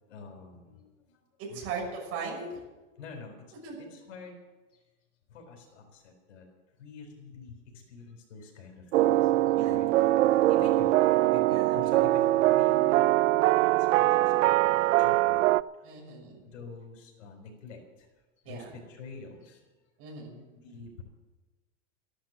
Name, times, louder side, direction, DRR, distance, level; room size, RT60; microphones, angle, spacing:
voice 1, 0.0-1.7 3.0-3.3 3.8-4.4 4.7-4.8 5.3-6.5 6.7-9.9 10.3-13.1 13.6-15.4 15.8-18.1 18.4-19.7 20.5-21.0, left 4 dB, 90° left, 3 dB, 4.3 m, -47 dB
voice 2, 1.4-2.6 3.6-3.8 9.5-9.8 11.5-11.8 15.8-16.5 18.4-18.7 20.0-20.4, right 4 dB, 40° right, -1 dB, 6.3 m, -38 dB
sound 1, 8.9-15.6, right 16 dB, 90° right, 0.5 m, -23 dB
14.0 x 12.0 x 7.4 m, 1.2 s
supercardioid pair, 150°, 36 cm